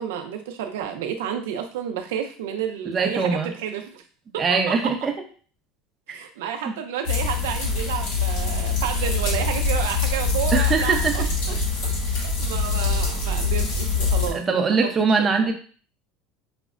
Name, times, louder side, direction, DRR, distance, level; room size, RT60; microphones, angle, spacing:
voice 1, 0.0-4.0 4.3-4.7 6.1-11.6 12.0-14.9 15.2-15.5, right 9 dB, 85° right, 5 dB, 0.4 m, -31 dB
voice 2, 2.9-3.5 4.4-5.1 6.1-6.2 6.7-6.8 10.5-11.2 14.3-15.5, right 4 dB, 30° right, 4 dB, 0.6 m, -22 dB
sound 1, 7.0-14.3, left 4 dB, 70° left, 1.5 m, -24 dB
5.0 x 2.0 x 2.4 m, 0.42 s
supercardioid pair, 120°, 0 cm